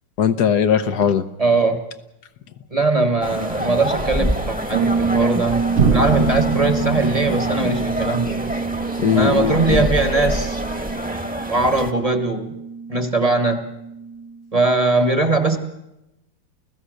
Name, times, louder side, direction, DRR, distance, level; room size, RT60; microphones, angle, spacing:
voice 1, 0.2-1.3 9.0-9.9, left 8 dB, 60° left, 12 dB, 1.4 m, -19 dB
voice 2, 1.4-1.8 2.7-8.4 9.1-10.6 11.5-12.5 12.9-13.6 14.5-15.6, right 3 dB, 20° right, 7 dB, 1.4 m, -20 dB
sound 1, 3.2-11.9, equal, 5° right, 1.3 m, -27 dB
Bass guitar, 4.7-14.4, right 5 dB, 60° right, 1.8 m, -27 dB
sound 2, 5.8-9.7, right 5 dB, 45° right, 0.8 m, -25 dB
29.0 x 16.0 x 6.6 m, 0.90 s
omnidirectional pair, 2.1 m